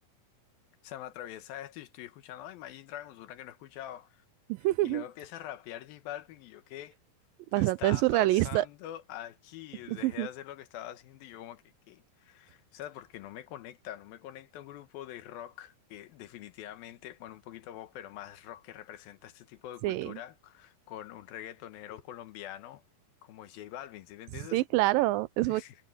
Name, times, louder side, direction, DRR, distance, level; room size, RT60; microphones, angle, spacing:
voice 1, 0.8-4.2 4.8-7.0 7.5-22.8 23.2-24.6 25.5-25.8, left 12 dB, 85° left, 2.9 m, -44 dB
voice 2, 4.5-5.0 7.5-8.7 9.9-10.3 19.8-20.2 24.5-25.6, right 18 dB, 85° right, 2.2 m, -26 dB
omnidirectional pair, 4.1 m